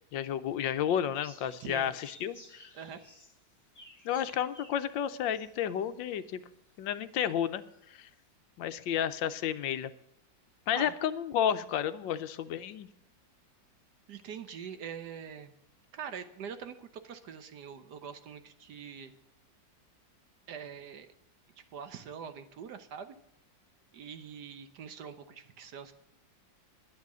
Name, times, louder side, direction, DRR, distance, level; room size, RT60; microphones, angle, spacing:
voice 1, 0.1-2.7 4.0-6.4 6.8-7.6 7.9-8.1 8.6-9.9 10.7-12.9, left 9 dB, 85° left, 12 dB, 1.4 m, -31 dB
sound 1, 1.2-6.4 6.9-7.0 7.5-8.0, equal, 10° left, 1.9 m, -56 dB
voice 2, 1.6-1.9 2.7-3.0 10.7-10.9 14.1-15.5 15.9-19.1 20.5-21.1 21.7-23.2 23.9-25.9, right 7 dB, 65° right, 10 dB, 1.4 m, -43 dB
11.0 x 9.5 x 6.1 m, 0.82 s
omnidirectional pair, 2.0 m